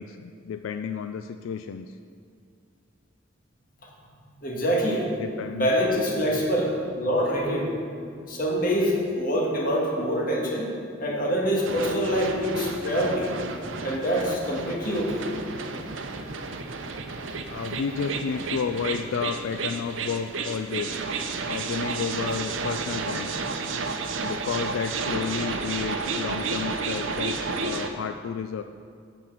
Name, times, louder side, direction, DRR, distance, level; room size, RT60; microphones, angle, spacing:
voice 1, 0.0-2.0 5.2-5.7 17.5-21.0 21.5-23.3 24.2-28.6, left 6 dB, 85° left, 9 dB, 0.3 m, -31 dB
voice 2, 4.4-5.1 5.5-7.7 8.1-10.7 11.0-13.4 13.8-15.3, equal, 45° left, -2 dB, 1.7 m, -25 dB
sound 1, 11.6-27.9, right 4 dB, 75° right, 0.7 m, -32 dB
8.5 x 5.3 x 7.4 m, 2.3 s
head